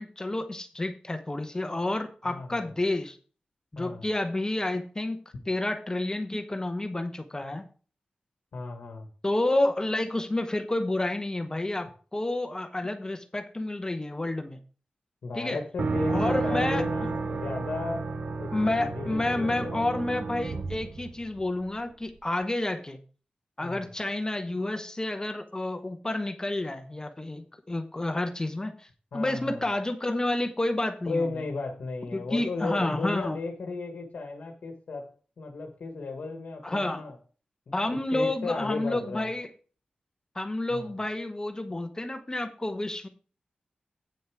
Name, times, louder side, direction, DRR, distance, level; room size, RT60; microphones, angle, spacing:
voice 1, 0.0-3.2 3.7-7.6 9.2-14.6 15.3-15.6 16.1-16.8 18.5-23.0 23.6-31.3 32.1-33.4 36.6-37.0 37.7-39.5 40.3-43.1, left 2 dB, 25° left, 7 dB, 0.8 m, -30 dB
voice 2, 2.2-2.7 3.7-4.1 8.5-9.1 15.2-18.1 18.4-20.0 23.6-23.9 29.1-29.6 31.1-37.2 37.7-39.3 40.7-40.9, left 3 dB, 80° left, 2 dB, 1.2 m, -35 dB
sound 1, 15.8-21.7, right 3 dB, 60° right, 0.9 m, -32 dB
8.9 x 6.5 x 4.6 m, 0.40 s
cardioid pair, 60°, 3 cm